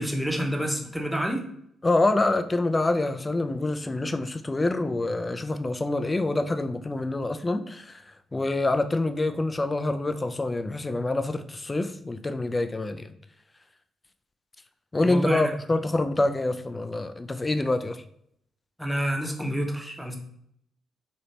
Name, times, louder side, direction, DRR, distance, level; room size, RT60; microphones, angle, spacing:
voice 1, 0.0-1.4 15.0-15.5 18.8-20.2, equal, 5° right, 0.7 m, -28 dB
voice 2, 1.8-8.0 8.3-13.1 14.9-18.0, left 2 dB, 25° left, 0.4 m, -26 dB
3.1 x 2.9 x 2.8 m
hypercardioid pair, 40°, 0 cm